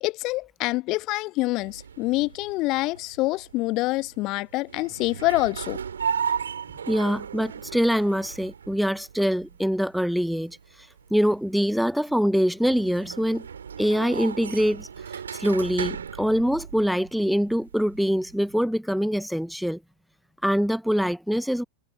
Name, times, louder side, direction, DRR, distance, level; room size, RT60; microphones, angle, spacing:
voice 1, 0.0-5.8, left 21 dB, 40° left, 1.4 m, -26 dB
sound 1, 1.6-18.7, right 7 dB, 70° right, 3.5 m, -36 dB
voice 2, 6.9-13.5 13.8-19.8 20.4-21.6, equal, ahead, 0.8 m, -24 dB
figure-of-eight pair, 90°, 0 cm